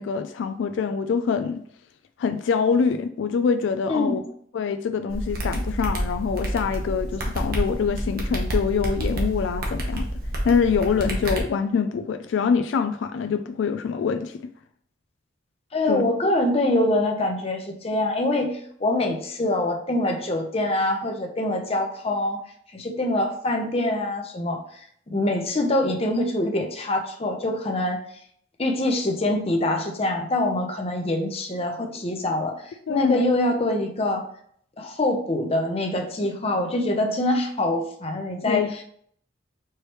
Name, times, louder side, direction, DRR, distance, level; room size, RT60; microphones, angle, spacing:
voice 1, 0.0-1.6 2.2-4.2 4.5-10.1 10.4-14.4 15.9-16.1 32.9-33.2 38.5-38.8, left 6 dB, 80° left, 0.3 m, -25 dB
sound 1, 5.1-11.4, right 1 dB, 55° right, 1.0 m, -28 dB
voice 2, 15.7-22.4 22.7-24.6 25.1-28.0 28.6-34.2 34.8-38.7, left 1 dB, 30° left, 0.6 m, -24 dB
4.6 x 3.2 x 3.0 m
head